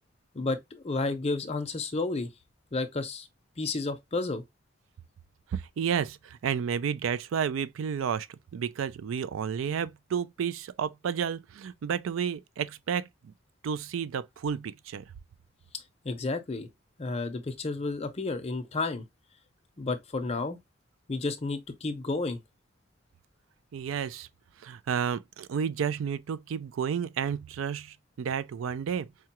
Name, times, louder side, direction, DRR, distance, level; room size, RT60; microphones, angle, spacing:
voice 1, 0.3-2.3 2.7-3.3 3.6-4.4 16.0-16.7 17.0-19.0 19.8-20.6 21.1-22.4, left 3 dB, 30° left, 0.6 m, -31 dB
voice 2, 5.5-8.3 8.5-13.3 13.6-15.0 23.7-24.3 24.6-29.1, right 7 dB, 85° right, 0.4 m, -31 dB
4.7 x 2.2 x 2.8 m
head